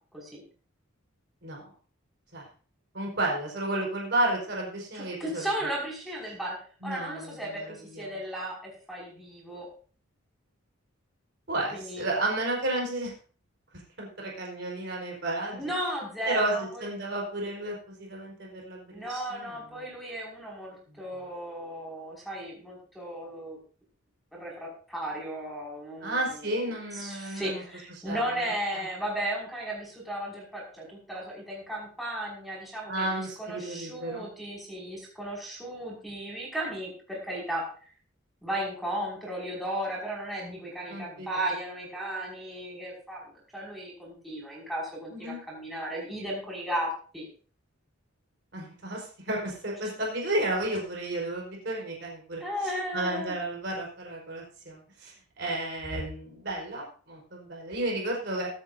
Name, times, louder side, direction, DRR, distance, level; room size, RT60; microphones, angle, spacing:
voice 1, 2.9-5.4 6.8-8.0 11.5-13.1 13.7-15.6 16.2-19.6 20.9-21.0 26.0-27.6 28.0-28.8 32.9-34.2 40.9-41.3 45.1-45.4 48.5-52.4 52.9-58.5, right 1 dB, 55° right, -1 dB, 4.7 m, -32 dB
voice 2, 4.9-6.6 6.8-9.7 11.7-12.0 15.5-16.9 18.9-23.6 24.3-26.5 26.9-37.6 38.4-47.3 52.4-53.3, right 1 dB, ahead, -5 dB, 5.9 m, -35 dB
23.0 x 9.1 x 2.7 m, 0.40 s
head